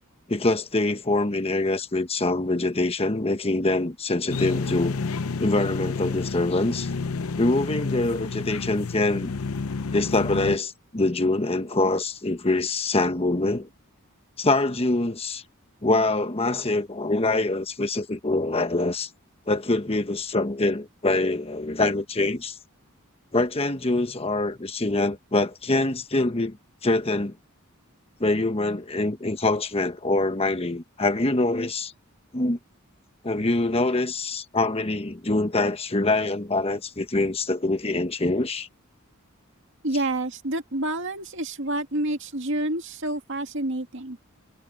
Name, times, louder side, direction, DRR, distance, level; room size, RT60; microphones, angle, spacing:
voice 1, 0.3-5.0 5.4-6.9 7.4-9.3 9.9-13.7 14.4-15.4 15.8-19.1 19.5-22.6 23.3-26.6 26.8-27.4 28.2-31.9 32.3-32.6 33.2-38.7, left 2 dB, 30° left, 1.2 m, -24 dB
sound 1, 4.3-10.6, left 4 dB, 85° left, 0.7 m, -30 dB
voice 2, 39.8-44.2, right 1 dB, 60° right, 2.2 m, -28 dB
head